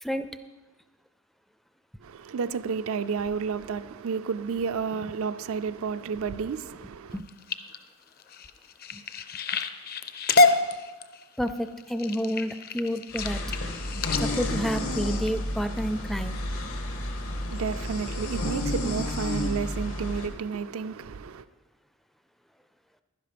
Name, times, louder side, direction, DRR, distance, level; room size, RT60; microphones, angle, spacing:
voice 1, 2.0-7.2 17.5-21.4, right 5 dB, 75° right, 0.4 m, -31 dB
sound 1, 7.1-15.8 16.4-16.7 17.2-17.5 18.0-18.1 18.4-18.5, left 3 dB, 45° left, 0.6 m, -28 dB
voice 2, 11.4-13.4 14.2-16.4, equal, ahead, 0.4 m, -30 dB
sound 2, 13.1-20.3, left 1 dB, 80° left, 1.6 m, -31 dB
11.5 x 10.5 x 5.1 m
head